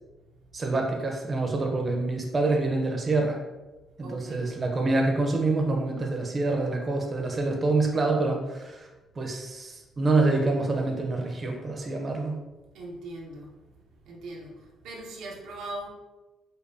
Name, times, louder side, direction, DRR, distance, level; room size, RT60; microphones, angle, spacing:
voice 1, 0.5-3.4 4.0-8.9 9.2-12.4, right 3 dB, 35° right, 1 dB, 0.6 m, -26 dB
voice 2, 4.0-4.5 12.7-13.6 14.0-15.9, right 1 dB, 85° right, -2 dB, 0.7 m, -40 dB
5.2 x 2.1 x 2.6 m, 1.1 s
cardioid pair, 90°, 0 cm